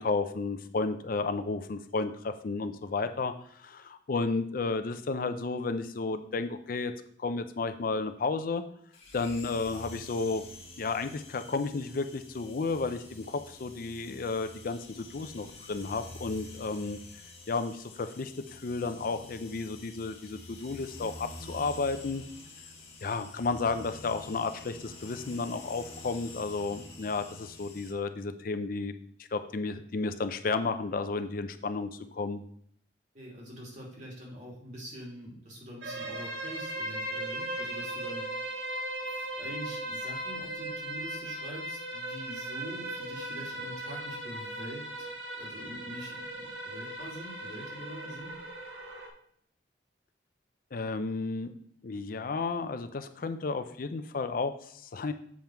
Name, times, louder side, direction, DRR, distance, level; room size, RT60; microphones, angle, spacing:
voice 1, 0.0-6.9 7.2-8.6 9.1-10.4 10.8-17.0 17.5-22.2 23.0-28.9 29.3-32.4 50.7-51.5 51.8-55.1, left 3 dB, 50° left, 9 dB, 0.5 m, -32 dB
sound 1, 8.9-27.9, left 2 dB, 35° left, 1.3 m, -48 dB
voice 2, 33.1-38.6 39.1-48.3, equal, 45° right, -2 dB, 2.6 m, -45 dB
sound 2, 35.8-49.1, right 1 dB, 85° right, 1.8 m, -38 dB
7.4 x 5.5 x 4.5 m, 0.65 s
head